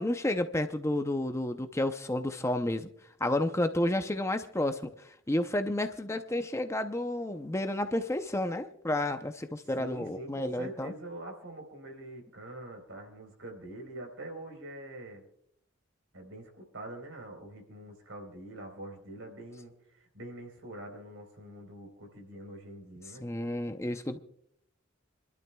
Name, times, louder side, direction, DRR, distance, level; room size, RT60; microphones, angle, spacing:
voice 1, 0.0-2.9 3.2-10.9 23.2-24.2, left 1 dB, 15° left, 8 dB, 0.6 m, -31 dB
voice 2, 9.8-15.2 16.1-23.2, right 1 dB, 80° right, 3 dB, 4.0 m, -45 dB
28.0 x 12.0 x 2.3 m, 0.70 s
head